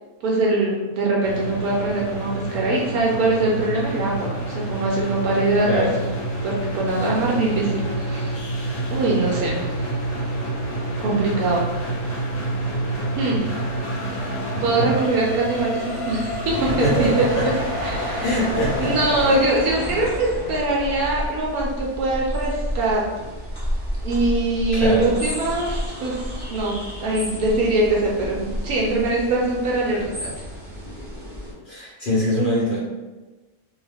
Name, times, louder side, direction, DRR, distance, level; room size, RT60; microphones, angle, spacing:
voice 1, 0.2-6.0 6.4-8.4 8.9-9.7 11.0-11.6 13.2-13.5 14.6-17.5 17.8-18.2 18.8-23.3 24.0-30.3, right 2 dB, 80° right, -3 dB, 1.0 m, -22 dB
sound 1, 1.2-19.4, right 1 dB, 80° left, 1.2 m, -28 dB
voice 2, 5.7-6.0 14.8-14.9 16.8-17.5 18.2-18.9 24.7-25.1 31.7-32.8, equal, 45° left, -7 dB, 0.7 m, -23 dB
sound 2, 15.3-31.5, equal, 10° right, 0.5 m, -32 dB
sound 3, 16.5-21.6, equal, 55° right, 0.8 m, -32 dB
2.5 x 2.3 x 3.3 m, 1.2 s
omnidirectional pair, 1.6 m